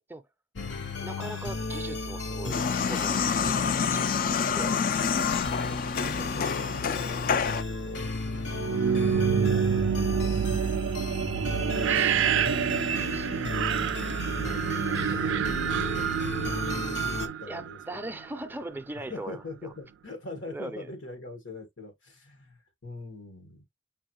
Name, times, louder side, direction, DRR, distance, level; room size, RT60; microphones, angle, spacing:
sound 1, 0.6-17.3, left 3 dB, 70° left, 0.7 m, -34 dB
voice 1, 1.0-4.8 11.9-12.2 13.1-13.3 17.5-19.4 20.5-20.9, right 2 dB, 10° right, 0.4 m, -40 dB
sound 2, 2.5-7.6, left 6 dB, 50° left, 0.3 m, -27 dB
voice 2, 5.2-8.0 8.7-9.8 10.2-10.6 11.7-12.2 14.4-15.7 16.4-17.8 19.1-23.6, left 2 dB, 90° left, 1.6 m, -43 dB
sound 3, 8.5-18.3, right 8 dB, 80° right, 0.3 m, -27 dB
5.5 x 2.5 x 2.9 m
head